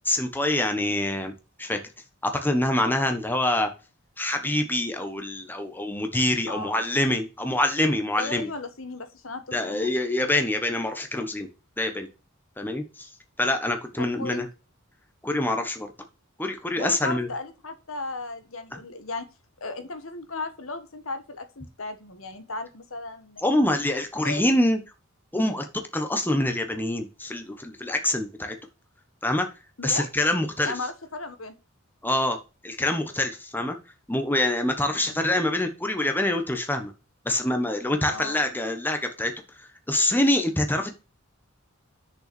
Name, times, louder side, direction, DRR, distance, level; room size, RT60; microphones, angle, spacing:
voice 1, 0.1-1.3 1.6-1.8 2.2-3.7 4.2-8.5 9.5-11.5 11.8-12.1 12.6-13.1 13.4-14.5 15.2-15.9 16.4-17.3 18.7-18.8 23.4-24.8 25.3-28.6 29.2-29.5 29.8-30.7 32.0-33.8 34.1-36.9 37.2-39.3 39.6-40.9, left 1 dB, 10° left, 5 dB, 1.1 m, -25 dB
voice 2, 6.5-6.9 8.1-9.9 14.0-14.4 16.8-19.3 19.6-23.4 24.2-24.4 29.8-30.1 30.6-31.5 35.0-35.3 38.0-38.5, left 3 dB, 80° left, 9 dB, 1.4 m, -35 dB
6.7 x 5.7 x 6.9 m, 0.31 s
head